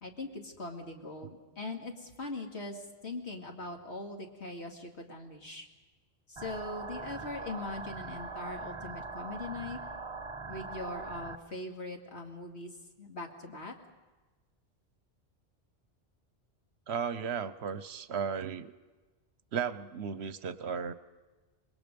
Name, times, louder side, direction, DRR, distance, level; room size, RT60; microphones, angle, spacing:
voice 1, 0.0-5.7 6.3-9.8 10.5-12.7 13.0-13.7, left 2 dB, 80° left, 1 dB, 2.5 m, -41 dB
sound 1, 6.4-11.4, right 4 dB, 30° right, 0.9 m, -41 dB
voice 2, 16.9-18.7 19.5-20.9, right 6 dB, 75° right, 14 dB, 1.1 m, -35 dB
26.5 x 21.0 x 5.3 m, 1.2 s
omnidirectional pair, 1.1 m